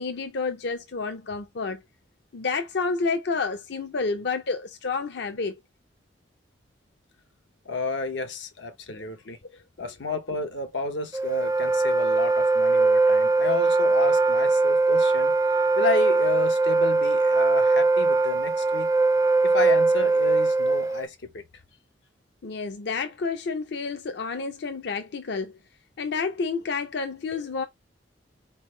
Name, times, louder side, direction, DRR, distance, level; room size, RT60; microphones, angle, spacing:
voice 1, 0.0-1.8 2.3-5.6 8.9-9.0 22.4-25.6 26.0-27.6, left 4 dB, 65° left, 0.5 m, -29 dB
voice 2, 7.6-9.4 9.8-15.3 15.8-18.9 19.4-21.4, left 3 dB, 90° left, 1.0 m, -31 dB
Wind instrument woodwind instrument, 11.1-21.1, right 3 dB, 20° right, 0.4 m, -21 dB
4.3 x 3.4 x 3.2 m
head